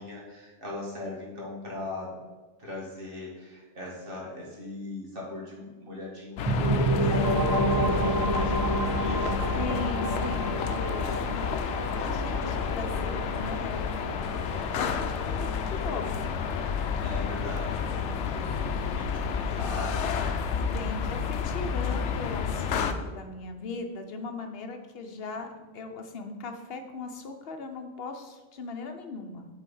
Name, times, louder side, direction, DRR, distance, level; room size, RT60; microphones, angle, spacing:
voice 1, 0.0-2.3 2.6-9.3 17.0-20.4, left 2 dB, 55° right, -3 dB, 2.2 m, -40 dB
sound 1, 6.4-22.9, left 6 dB, 90° left, 0.9 m, -30 dB
sound 2, 6.4-16.0, right 2 dB, 25° right, 0.6 m, -30 dB
voice 2, 9.5-11.7 12.0-13.9 14.8-14.9 15.2-16.4 20.7-25.5 25.7-29.5, left 3 dB, 60° left, 5 dB, 1.0 m, -38 dB
7.9 x 4.1 x 5.5 m, 1.2 s
omnidirectional pair, 1.1 m